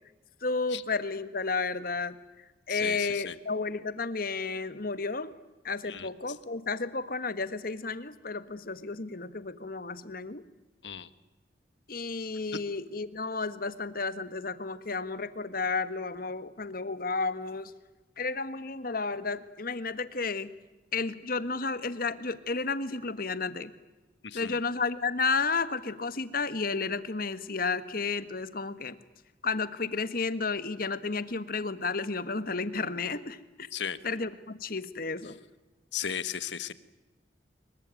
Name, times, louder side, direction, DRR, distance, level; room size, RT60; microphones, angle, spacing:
voice 1, 0.4-2.2 2.7-5.4 5.6-10.4 11.9-17.7 18.2-20.5 20.9-23.7 24.3-29.0 29.4-33.7 34.0-35.4, left 4 dB, 55° left, 13 dB, 1.6 m, -32 dB
voice 2, 2.7-3.3 5.9-6.1 10.8-11.1 24.2-24.6 33.7-34.0 35.9-36.7, left 8 dB, 80° left, 14 dB, 1.4 m, -36 dB
25.5 x 23.0 x 9.1 m, 1.1 s
head